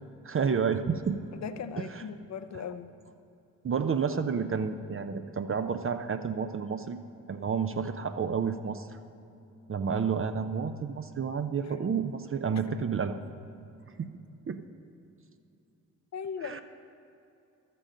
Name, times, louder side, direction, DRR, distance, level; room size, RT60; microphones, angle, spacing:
voice 1, 0.2-1.2 1.8-2.0 3.6-7.0 7.3-8.9 9.7-13.2 14.0-14.2 14.5-14.6 16.4-16.6, right 6 dB, 35° right, 8 dB, 0.6 m, -30 dB
voice 2, 1.4-2.9 16.1-16.6, left 6 dB, 45° left, 11 dB, 0.7 m, -38 dB
12.5 x 7.8 x 5.1 m, 2.7 s
supercardioid pair, 45°, 38 cm